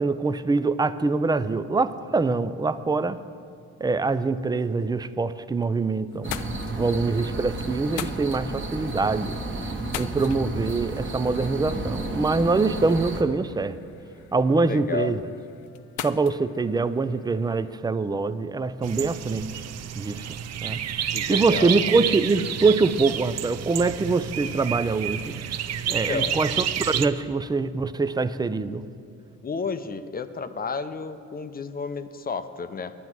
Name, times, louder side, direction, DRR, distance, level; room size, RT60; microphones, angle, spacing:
voice 1, 0.0-3.2 3.8-6.4 6.7-9.4 9.9-13.8 14.3-15.2 16.0-19.6 20.0-20.4 20.6-20.8 21.3-25.4 25.9-28.8, right 3 dB, 15° right, 14 dB, 0.4 m, -24 dB
sound 1, 5.5-5.8 6.1-17.7, left 11 dB, 85° left, 0.5 m, -43 dB
sound 2, 6.2-13.2, right 2 dB, 40° right, 1.3 m, -32 dB
voice 2, 14.6-15.1 21.1-21.8 25.8-26.4 29.4-32.9, left 5 dB, 30° left, 10 dB, 0.6 m, -32 dB
sound 3, 18.8-27.1, right 9 dB, 60° right, 0.6 m, -30 dB
10.0 x 9.3 x 6.1 m, 2.4 s
cardioid pair, 90°, 30 cm